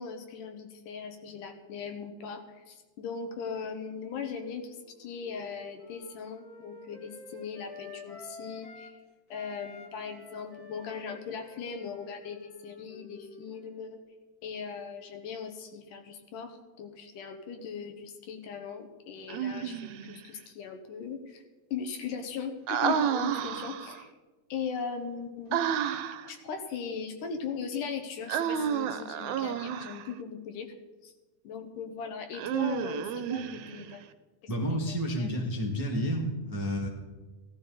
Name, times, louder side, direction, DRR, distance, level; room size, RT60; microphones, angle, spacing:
voice 1, 0.0-8.9 9.3-14.0 14.4-21.4 21.7-24.1 24.5-25.6 26.3-30.7 31.0-31.1 31.4-34.0 34.4-35.3, left 6 dB, 80° left, 5 dB, 2.8 m, -39 dB
Wind instrument woodwind instrument, 4.6-9.0 9.3-13.8, left 4 dB, 45° left, 1.2 m, -50 dB
Human voice, 19.3-20.2 22.7-24.0 25.5-26.3 28.3-30.1 32.3-33.9, right 9 dB, 75° right, 1.9 m, -31 dB
voice 2, 34.5-36.9, equal, 10° right, -1 dB, 0.8 m, -30 dB
16.5 x 12.5 x 4.0 m, 1.2 s
omnidirectional pair, 3.7 m